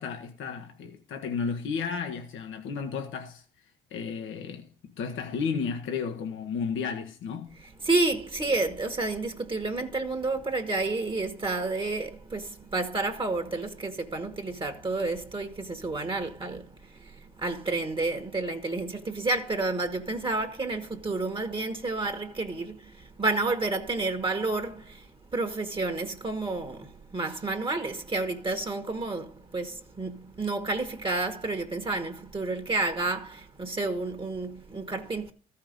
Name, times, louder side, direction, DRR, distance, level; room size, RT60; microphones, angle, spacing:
voice 1, 0.0-3.4 3.9-7.6, left 5 dB, 80° left, 1.2 m, -33 dB
voice 2, 7.8-16.7 17.0-25.0 25.3-35.3, right 3 dB, 25° right, 1.4 m, -30 dB
13.5 x 5.8 x 5.2 m
cardioid pair, 90°, 20 cm